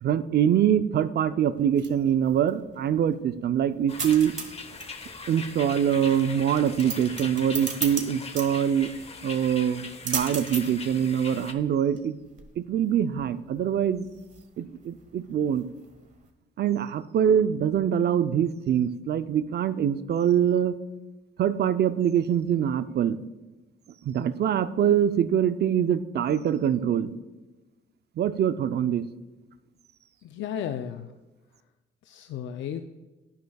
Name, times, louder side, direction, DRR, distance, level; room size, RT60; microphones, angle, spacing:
voice 1, 0.0-4.3 5.3-8.9 9.2-12.2 12.6-14.1 14.6-15.7 16.6-20.8 21.4-23.2 24.0-27.1 28.2-29.0, right 9 dB, 55° right, 12 dB, 0.5 m, -24 dB
sound 1, 1.5-16.3, right 4 dB, 40° right, 1.5 m, -39 dB
sound 2, 3.9-11.5, left 4 dB, 30° left, 1.0 m, -41 dB
voice 2, 30.2-31.1 32.0-32.8, left 9 dB, 70° left, 7 dB, 0.5 m, -34 dB
11.5 x 9.4 x 2.3 m, 1.2 s
cardioid pair, 90°, 20 cm